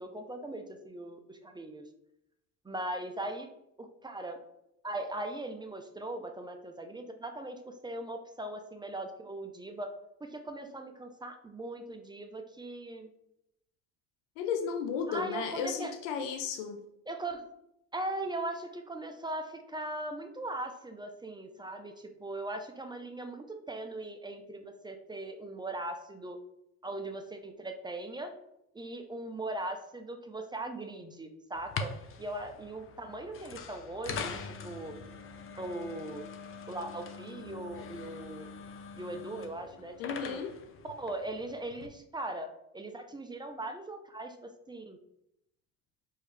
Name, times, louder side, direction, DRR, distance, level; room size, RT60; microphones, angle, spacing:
voice 1, 0.0-1.8 2.6-3.5 3.8-4.4 4.8-9.9 10.2-13.1 15.1-15.9 17.1-17.4 17.9-26.4 26.8-28.3 28.7-31.9 32.2-34.9 35.6-36.2 36.7-38.5 39.0-39.9 40.3-40.4 40.8-42.5 42.7-45.0, right 2 dB, 10° right, 6 dB, 0.5 m, -39 dB
voice 2, 14.4-16.8 40.0-40.5, left 6 dB, 80° left, 5 dB, 0.6 m, -34 dB
sound 1, 31.5-41.9, left 5 dB, 35° left, 0.6 m, -43 dB
4.7 x 2.7 x 3.3 m, 0.81 s
hypercardioid pair, 70°, 37 cm